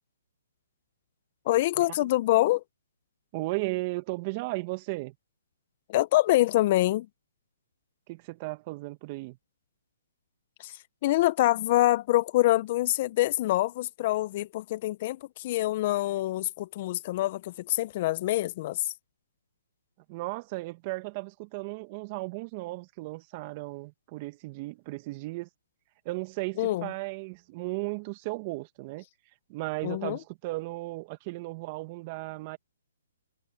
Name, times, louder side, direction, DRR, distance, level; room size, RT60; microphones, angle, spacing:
voice 1, 1.5-2.6 5.9-7.1 10.6-18.9 26.6-26.9 29.8-30.2, left 16 dB, 40° left, 0.8 m, -25 dB
voice 2, 3.3-5.2 8.1-9.4 20.1-25.5 26.1-29.0 29.5-32.6, right 23 dB, 35° right, 1.9 m, -35 dB
hypercardioid pair, 145°, 0 cm